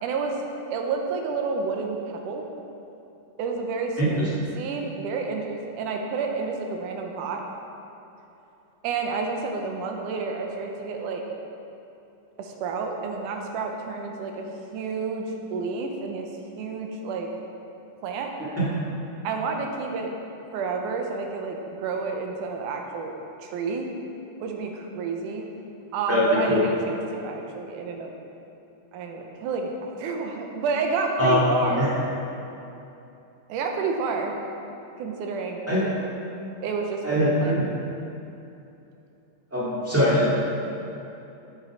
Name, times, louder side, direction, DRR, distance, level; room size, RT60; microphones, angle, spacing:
voice 1, 0.0-0.4 0.7-2.5 3.4-7.4 8.8-11.2 12.4-14.5 14.7-16.3 16.6-17.3 18.0-18.3 19.2-20.1 20.5-23.1 23.4-23.9 24.4-25.5 25.9-28.1 28.9-31.9 33.5-34.4 35.0-35.6 36.6-37.5, right 4 dB, 90° right, 2 dB, 2.3 m, -30 dB
voice 2, 26.1-26.6 31.2-31.9 35.7-35.9 37.0-37.7 39.5-40.3, equal, 10° right, -9 dB, 0.8 m, -22 dB
7.9 x 7.0 x 4.6 m, 2.8 s
omnidirectional pair, 3.6 m